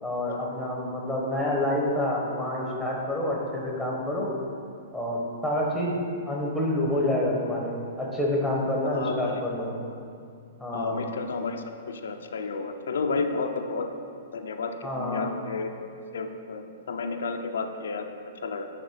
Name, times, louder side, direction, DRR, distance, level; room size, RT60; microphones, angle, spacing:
voice 1, 0.0-4.3 4.9-6.0 6.3-9.8 10.6-11.0 14.8-15.3, left 1 dB, ahead, -3 dB, 1.1 m, -28 dB
voice 2, 10.7-13.9 14.3-15.7 16.1-18.0 18.4-18.7, left 4 dB, 90° left, 5 dB, 0.5 m, -31 dB
8.7 x 3.6 x 5.0 m, 2.3 s
hypercardioid pair, 155°, 0 cm